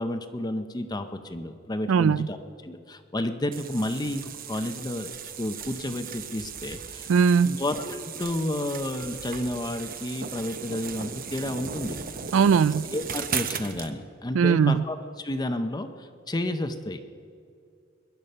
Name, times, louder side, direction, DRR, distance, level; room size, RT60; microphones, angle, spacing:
voice 1, 0.0-2.4 2.6-5.1 5.4-7.1 7.4-12.0 12.9-17.0, left 1 dB, 20° left, 0.6 m, -31 dB
voice 2, 1.9-2.3 7.1-7.5 12.3-12.9 14.3-14.8, right 6 dB, 85° right, 0.4 m, -20 dB
sound 1, 3.5-13.9, right 6 dB, 45° right, 0.8 m, -37 dB
22.0 x 10.5 x 5.4 m
head